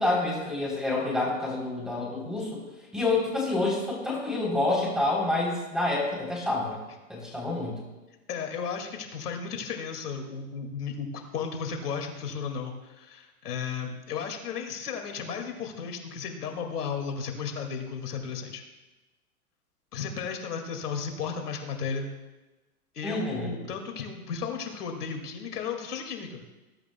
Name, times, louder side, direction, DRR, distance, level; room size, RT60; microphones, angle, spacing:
voice 1, 0.0-2.6 2.9-6.8 7.1-7.8 23.0-23.5, left 2 dB, ahead, -3 dB, 3.4 m, -28 dB
voice 2, 8.3-11.1 11.3-18.6 19.9-22.1 22.9-26.4, left 6 dB, 80° left, 3 dB, 2.3 m, -34 dB
20.5 x 11.5 x 2.3 m, 1.1 s
hypercardioid pair, 150°, 45 cm